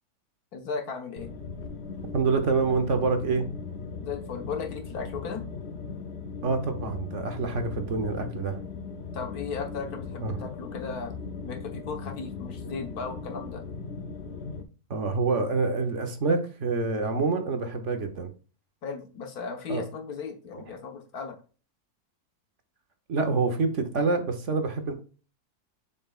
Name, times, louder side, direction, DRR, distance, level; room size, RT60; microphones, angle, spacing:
voice 1, 0.5-1.3 4.0-5.4 9.1-11.1 11.4-13.6 18.8-21.4, left 5 dB, 75° left, 5 dB, 1.7 m, -36 dB
sound 1, 1.2-14.6, left 5 dB, 55° left, 0.8 m, -38 dB
voice 2, 2.1-3.5 6.4-8.6 10.2-10.4 14.9-18.3 19.7-19.8 20.6-20.7 23.1-24.9, right 4 dB, 55° right, 6 dB, 1.2 m, -26 dB
7.3 x 5.5 x 2.4 m, 0.36 s
omnidirectional pair, 1.6 m